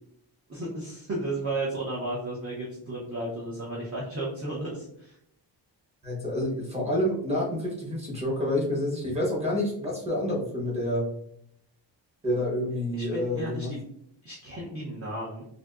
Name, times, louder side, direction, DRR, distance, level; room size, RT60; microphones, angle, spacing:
voice 1, 0.5-5.2 12.9-13.8 14.2-15.4, right 2 dB, 35° right, -5 dB, 0.7 m, -34 dB
voice 2, 6.0-11.0 12.2-13.7, left 1 dB, 15° right, -4 dB, 1.0 m, -28 dB
3.4 x 2.7 x 2.4 m, 0.72 s
wide cardioid pair, 145°, 43 cm